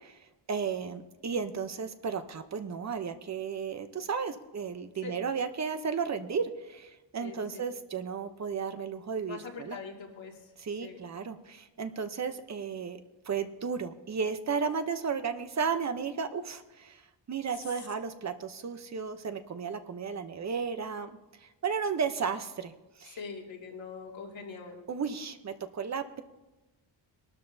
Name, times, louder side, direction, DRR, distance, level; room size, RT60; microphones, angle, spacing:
voice 1, 0.0-9.8 10.6-17.0 17.3-21.1 21.4-22.7 23.0-23.2 24.9-26.2, right 6 dB, 35° right, 9 dB, 0.8 m, -34 dB
voice 2, 7.2-7.7 9.3-10.5 10.8-11.0 17.7-17.8 23.1-24.8, left 5 dB, 85° left, 0 dB, 2.5 m, -43 dB
22.0 x 12.5 x 2.7 m, 1.1 s
wide cardioid pair, 155°, 45 cm